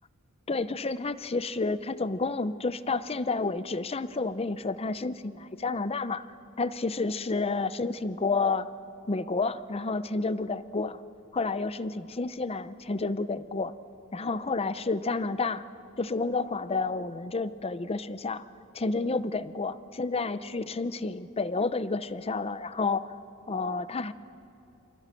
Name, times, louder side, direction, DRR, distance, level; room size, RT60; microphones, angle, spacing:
voice 1, 0.5-6.3 6.6-8.7 9.1-11.0 11.3-13.7 14.1-15.7 16.0-18.4 18.7-23.1 23.5-24.1, left 3 dB, 30° left, 15 dB, 0.7 m, -30 dB
28.5 x 26.0 x 7.7 m, 2.8 s
head